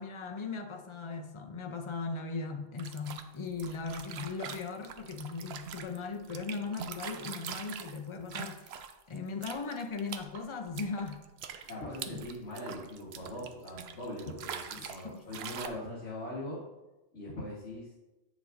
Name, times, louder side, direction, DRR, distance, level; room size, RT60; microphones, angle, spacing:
voice 1, 0.0-8.8 9.1-11.2 11.5-11.7 12.1-12.2 14.8-15.2, left 4 dB, 40° left, 5 dB, 0.4 m, -38 dB
sound 1, 2.8-9.2 9.4-15.1 15.3-15.7, right 8 dB, 65° right, 0.7 m, -43 dB
voice 2, 11.7-16.6 17.1-17.9, left 1 dB, 65° left, -7 dB, 1.8 m, -41 dB
8.3 x 6.2 x 2.6 m, 1.0 s
omnidirectional pair, 1.3 m